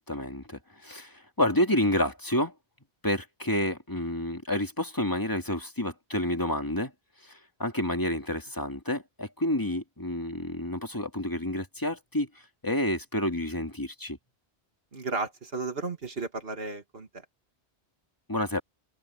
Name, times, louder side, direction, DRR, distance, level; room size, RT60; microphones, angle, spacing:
voice 1, 0.1-2.5 3.0-6.9 7.2-12.3 12.6-14.2 18.3-18.6, left 1 dB, 20° left, 2.2 m, -29 dB
voice 2, 14.9-17.2, right 3 dB, 60° right, 2.3 m, -34 dB
omnidirectional pair, 1.1 m